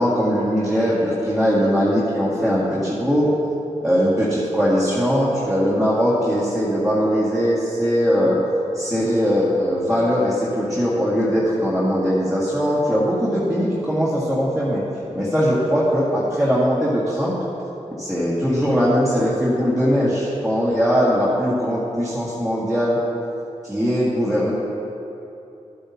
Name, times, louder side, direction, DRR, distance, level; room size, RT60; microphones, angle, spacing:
voice 1, 0.0-3.3 3.8-8.4 8.7-14.8 15.1-17.4 18.0-23.0 23.6-24.5, equal, 5° right, -9 dB, 1.9 m, -20 dB
13.0 x 8.5 x 2.8 m, 2.8 s
cardioid pair, 75°, 12 cm